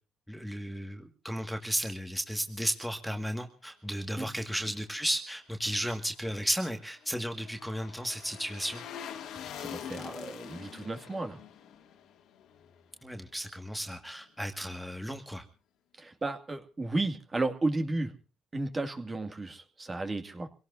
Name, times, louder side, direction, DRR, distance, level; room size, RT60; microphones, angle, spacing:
voice 1, 0.3-8.8 13.0-15.4, equal, ahead, 5 dB, 1.9 m, -34 dB
sound 1, 6.1-13.4 13.7-13.8, left 9 dB, 80° left, 2.3 m, -45 dB
voice 2, 9.3-11.4 16.0-18.1 18.5-20.5, right 2 dB, 25° right, 6 dB, 2.3 m, -33 dB
26.5 x 17.5 x 2.7 m, 0.34 s
cardioid pair, 85°, 0 cm